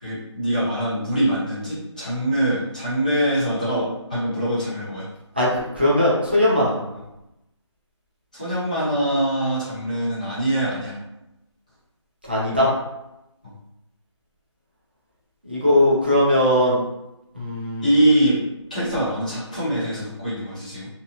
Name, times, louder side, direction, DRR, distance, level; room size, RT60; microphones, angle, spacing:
voice 1, 0.0-5.1 8.3-10.9 13.4-13.5 17.8-18.4 18.7-20.9, right 1 dB, 15° left, -11 dB, 0.7 m, -23 dB
voice 2, 5.4-6.8 12.3-12.7 15.4-16.8 17.3-17.8, left 1 dB, 20° right, -7 dB, 0.5 m, -19 dB
2.7 x 2.1 x 2.4 m, 0.91 s
figure-of-eight pair, 175°, 16 cm